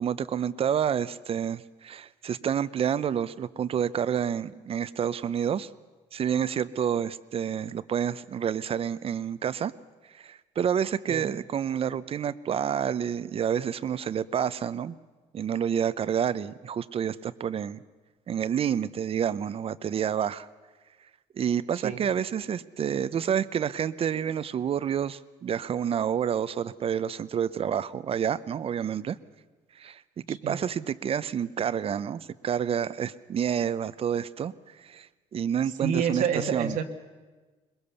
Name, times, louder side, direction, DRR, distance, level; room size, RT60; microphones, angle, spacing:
voice 1, 0.0-5.7 6.1-9.7 10.2-15.0 15.3-17.8 18.3-20.5 21.4-29.2 29.8-34.5 34.8-35.1 35.3-36.8, right 8 dB, 45° right, 16 dB, 0.7 m, -29 dB
voice 2, 30.3-30.6 35.8-36.8, right 7 dB, 80° right, 5 dB, 1.5 m, -28 dB
21.5 x 21.5 x 7.0 m, 1.3 s
cardioid pair, 100°, 13 cm